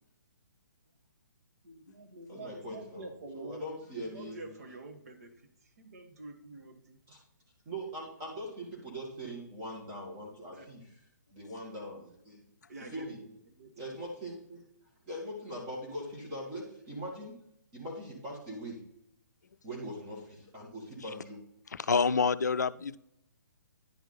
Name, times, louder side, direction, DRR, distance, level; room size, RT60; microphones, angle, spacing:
voice 1, 1.6-3.6 4.0-7.0 10.5-10.8 12.7-13.7, right 2 dB, 55° right, 4 dB, 1.4 m, -47 dB
voice 2, 2.3-3.1 3.3-4.6 7.1-7.2 7.7-10.8 11.3-12.4 12.8-13.2 13.8-14.6 15.0-17.4 17.7-18.8 19.6-21.4, equal, 25° right, -3 dB, 2.2 m, -41 dB
voice 3, 21.7-23.0, left 5 dB, 65° left, 16 dB, 0.4 m, -27 dB
10.5 x 4.6 x 4.0 m, 0.74 s
figure-of-eight pair, 135°, 10 cm